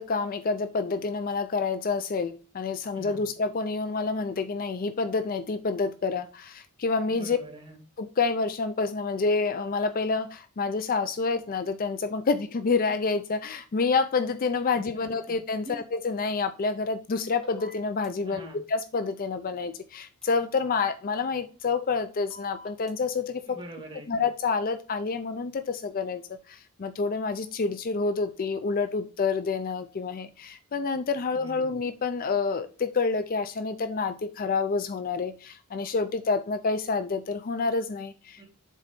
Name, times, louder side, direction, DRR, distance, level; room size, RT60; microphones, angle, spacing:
voice 1, 0.0-7.4 8.0-23.6 24.1-26.2 26.5-38.4, left 4 dB, 40° left, 0.4 m, -28 dB
voice 2, 2.9-3.2 7.1-7.8 14.7-15.1 15.6-15.8 18.2-18.6 23.5-24.1 31.3-31.7 38.4-38.5, right 1 dB, 25° right, 2.7 m, -44 dB
sound 1, 17.4-18.1 20.2-20.3 22.3-22.9, right 2 dB, ahead, 2.1 m, -45 dB
7.4 x 3.9 x 5.2 m
head